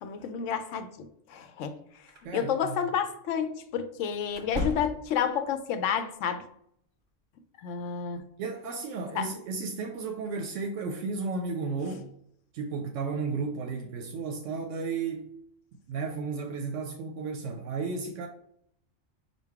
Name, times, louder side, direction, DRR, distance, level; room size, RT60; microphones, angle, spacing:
voice 1, 0.0-1.8 2.3-6.4 7.6-8.2 9.2-9.3, left 8 dB, 90° left, 0.9 m, -30 dB
sound 1, 2.1-2.3 4.3-5.3, left 1 dB, 55° right, 0.7 m, -35 dB
voice 2, 2.2-2.8 8.4-12.1 12.5-15.3 15.9-18.3, right 4 dB, 85° right, 0.9 m, -33 dB
5.2 x 2.2 x 4.6 m
omnidirectional pair, 1.2 m